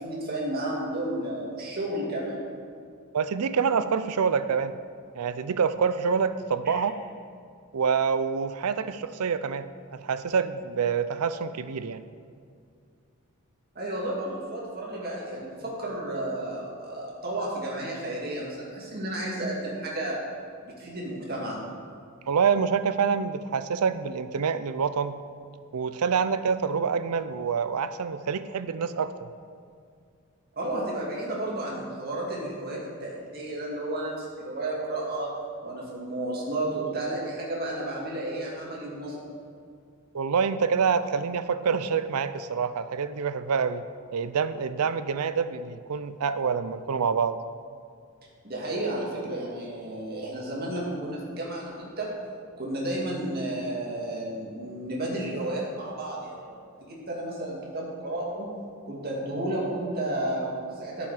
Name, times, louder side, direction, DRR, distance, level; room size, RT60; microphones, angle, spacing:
voice 1, 0.0-2.4 13.7-20.2 20.6-21.6 30.6-35.3 35.6-39.3 48.4-52.1 52.6-58.5 58.9-61.1, right 1 dB, 45° right, -4 dB, 2.2 m, -32 dB
voice 2, 3.1-4.7 5.1-7.0 7.7-12.0 22.3-25.2 25.7-29.3 40.1-43.8 44.1-47.4, right 6 dB, 85° right, 13 dB, 0.5 m, -26 dB
11.0 x 7.1 x 4.9 m, 2.3 s
head